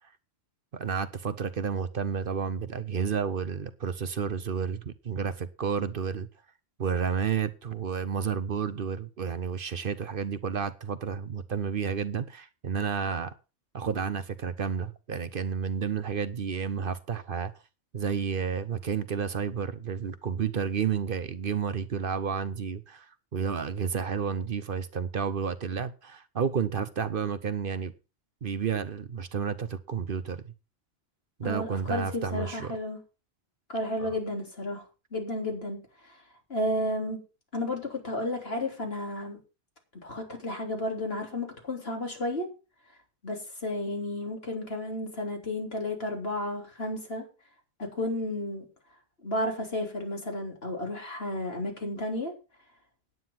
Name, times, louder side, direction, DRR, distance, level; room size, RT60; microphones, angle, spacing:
voice 1, 0.7-6.3 6.8-13.3 13.7-17.5 17.9-23.1 23.3-27.9 28.4-30.4 31.4-32.7 34.0-34.1, right 6 dB, 55° right, 1.0 m, -31 dB
voice 2, 31.4-33.0 33.7-34.8 35.1-36.2 36.5-37.2 37.5-39.4 40.0-42.5 43.2-47.3 47.8-48.7 49.2-52.3, left 1 dB, 65° left, 3.8 m, -32 dB
9.6 x 9.4 x 5.8 m
omnidirectional pair, 1.1 m